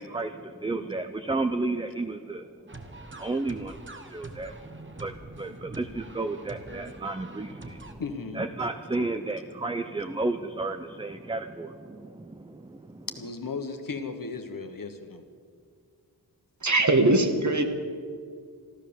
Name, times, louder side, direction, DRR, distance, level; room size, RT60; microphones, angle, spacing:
voice 1, 0.0-2.5 3.2-3.8 4.1-4.6 4.9-8.0 8.3-13.1, right 2 dB, 15° right, 8 dB, 0.5 m, -32 dB
sound 1, 2.7-7.9, right 2 dB, 30° right, 1.3 m, -44 dB
voice 2, 8.0-8.4 13.2-15.2, left 4 dB, 60° left, 7 dB, 1.3 m, -35 dB
voice 3, 16.6-17.6, right 2 dB, 50° right, 5 dB, 1.6 m, -21 dB
14.5 x 12.5 x 7.0 m, 2.1 s
wide cardioid pair, 95°, 38 cm